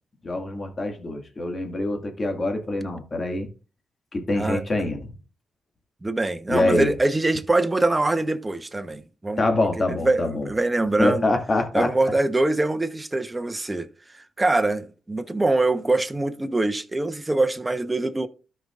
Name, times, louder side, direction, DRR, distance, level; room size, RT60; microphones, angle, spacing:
voice 1, 0.2-3.5 4.1-5.1 6.5-6.9 9.4-10.5 11.0-11.9, left 2 dB, 40° left, 2.1 m, -25 dB
voice 2, 6.0-9.4 9.9-11.3 11.7-13.9 14.1-18.3, right 2 dB, 20° right, 1.0 m, -23 dB
13.0 x 5.5 x 2.5 m
supercardioid pair, 55°, 0 cm